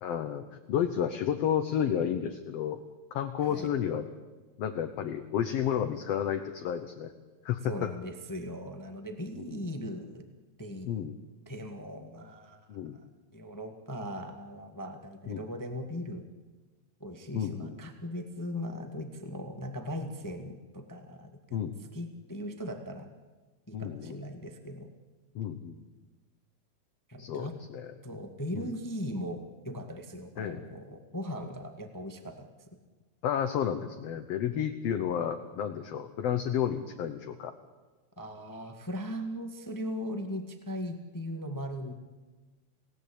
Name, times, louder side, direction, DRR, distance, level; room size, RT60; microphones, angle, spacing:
voice 1, 0.0-2.8 3.1-4.1 4.6-7.1 7.5-7.9 9.5-9.6 10.9-11.1 12.7-13.0 15.3-15.4 17.3-17.8 21.5-21.8 23.7-24.2 25.4-25.8 27.2-27.9 28.5-28.7 30.4-30.6 33.2-37.5, left 9 dB, 65° left, 7 dB, 1.9 m, -31 dB
voice 2, 7.6-10.2 10.6-10.9 11.4-13.0 13.3-16.2 17.0-21.6 21.9-23.1 23.7-24.9 27.1-27.5 28.0-29.4 29.6-32.5 38.2-41.9, equal, 10° left, 6 dB, 1.1 m, -39 dB
29.0 x 17.5 x 8.6 m, 1.3 s
omnidirectional pair, 3.4 m